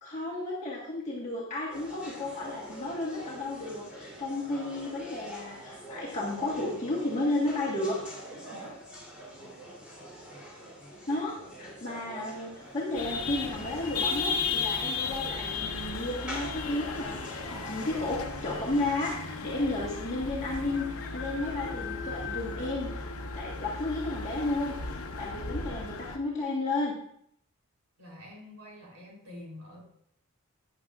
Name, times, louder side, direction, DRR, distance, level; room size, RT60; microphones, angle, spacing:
voice 1, 0.0-8.0 11.1-23.0 23.3-26.9, left 2 dB, 30° left, -5 dB, 1.5 m, -33 dB
sound 1, 1.7-19.1, equal, 5° right, 3.1 m, -45 dB
voice 2, 8.3-8.8 11.9-12.0 28.0-29.8, equal, 65° right, -3 dB, 3.4 m, -46 dB
sound 2, 12.9-26.2, left 4 dB, 80° left, 0.9 m, -35 dB
sound 3, 13.2-13.6 15.5-15.8 16.1-16.2 16.4-17.0 17.7-17.8 18.0-18.1 19.7-19.8 20.7-23.0 23.4-23.5 23.9-24.0 24.5-24.6, left 7 dB, 55° left, 0.9 m, -43 dB
12.5 x 9.3 x 2.4 m, 0.70 s
head